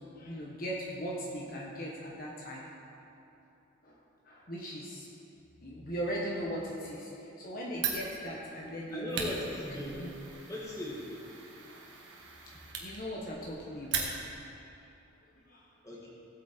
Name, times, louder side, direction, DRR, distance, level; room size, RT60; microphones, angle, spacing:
voice 1, 0.0-2.7 3.8-4.0 4.2-5.1 5.6-9.3 9.9-10.1 11.6-11.8 12.6-14.1 14.6-14.7 15.4-15.6, equal, 45° left, -4 dB, 1.4 m, -39 dB
Fire, 7.7-14.5, right 5 dB, 60° right, 1.8 m, -39 dB
voice 2, 8.9-10.1 10.5-11.1 15.8-16.1, left 1 dB, 15° left, -4 dB, 2.1 m, -38 dB
17.0 x 8.4 x 4.6 m, 2.8 s
head